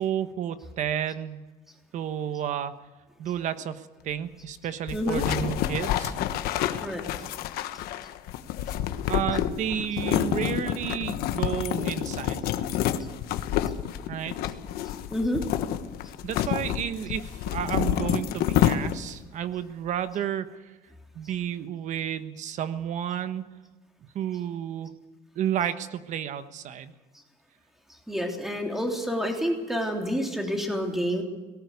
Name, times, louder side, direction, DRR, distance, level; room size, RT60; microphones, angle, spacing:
voice 1, 0.0-1.4 1.9-2.7 3.2-6.1 9.1-12.5 14.1-14.4 16.2-20.5 21.1-23.4 24.1-24.9 25.3-26.9, right 9 dB, 50° right, 11 dB, 1.3 m, -31 dB
sound 1, 4.9-19.2, left 11 dB, 80° left, 1.3 m, -28 dB
voice 2, 4.9-5.2 6.8-7.0 15.1-15.4 28.1-31.2, equal, ahead, 2 dB, 3.3 m, -28 dB
19.0 x 17.5 x 8.2 m, 1.2 s
cardioid pair, 165°, 16 cm